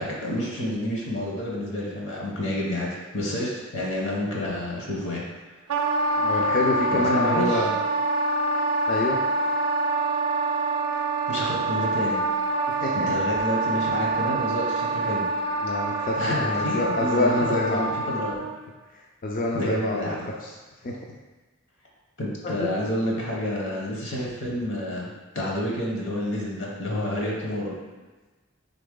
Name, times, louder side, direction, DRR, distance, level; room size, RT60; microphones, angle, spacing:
voice 1, 0.0-5.2 6.9-7.7 11.3-12.2 12.9-15.7 16.2-18.4 19.5-20.2 22.2-27.7, left 1 dB, 55° left, -3 dB, 0.9 m, -29 dB
Wind instrument woodwind instrument, 5.7-18.6, right 2 dB, 85° right, 0.4 m, -26 dB
voice 2, 6.2-7.8 8.9-9.2 12.8-13.1 15.6-17.9 19.2-20.1 20.4-20.5 20.8-21.0 22.6-22.7, left 2 dB, 35° left, -2 dB, 0.3 m, -26 dB
3.8 x 3.4 x 3.7 m, 1.3 s
head